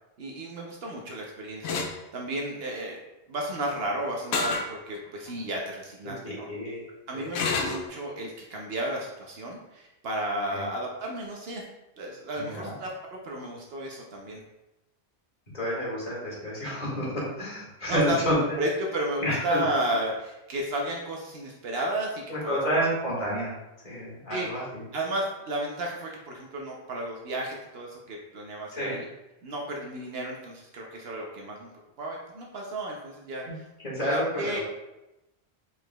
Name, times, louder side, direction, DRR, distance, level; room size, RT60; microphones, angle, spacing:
voice 1, 0.2-1.8 2.1-3.0 3.3-6.5 7.1-11.6 12.0-14.4 17.9-22.6 24.3-24.5 24.9-29.1 29.4-31.7 32.0-33.7 33.9-34.6, right 1 dB, 70° right, -1 dB, 0.9 m, -33 dB
sound 1, 1.6-1.9 4.3-4.7 5.3-5.4 7.3-7.9, left 4 dB, 80° left, 0.8 m, -28 dB
voice 2, 6.2-6.8 7.1-7.2 10.5-10.6 12.4-12.7 15.5-18.4 19.2-19.7 22.3-23.6 23.8-24.8 28.8-28.9 33.4-33.5 33.8-34.6, equal, 45° left, -6 dB, 1.8 m, -29 dB
4.8 x 4.0 x 2.2 m, 0.95 s
omnidirectional pair, 1.1 m